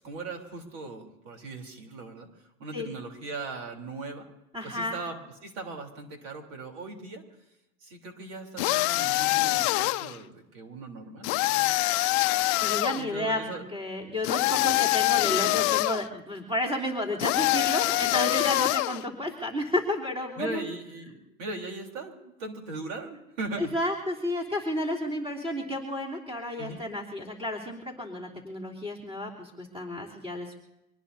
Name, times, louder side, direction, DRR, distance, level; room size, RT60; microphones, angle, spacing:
voice 1, 0.0-2.3 2.6-4.3 4.6-7.2 7.8-11.7 13.0-13.7 20.4-23.7 26.6-26.8, right 3 dB, 65° right, 3 dB, 3.7 m, -39 dB
voice 2, 4.5-5.0 12.3-13.4 13.7-20.7 23.6-30.6, left 1 dB, 15° right, -2 dB, 3.4 m, -31 dB
sound 1, 8.6-10.2 11.2-13.0 14.2-16.1 17.2-19.0, left 20 dB, 40° left, 0.6 m, -25 dB
25.0 x 19.5 x 2.8 m, 0.89 s
supercardioid pair, 140°, 42 cm